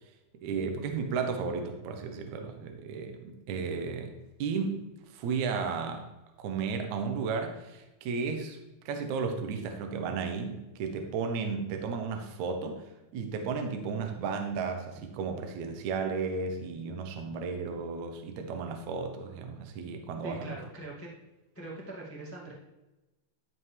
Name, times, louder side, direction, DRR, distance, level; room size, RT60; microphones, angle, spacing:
voice 1, 0.4-4.1 4.4-4.8 5.1-6.0 6.4-8.6 8.9-12.8 13.1-20.5, right 5 dB, 70° right, 5 dB, 1.9 m, -34 dB
voice 2, 20.2-21.1 21.5-22.5, right 2 dB, 20° left, -4 dB, 0.4 m, -42 dB
13.0 x 5.3 x 3.2 m, 1.0 s
omnidirectional pair, 4.1 m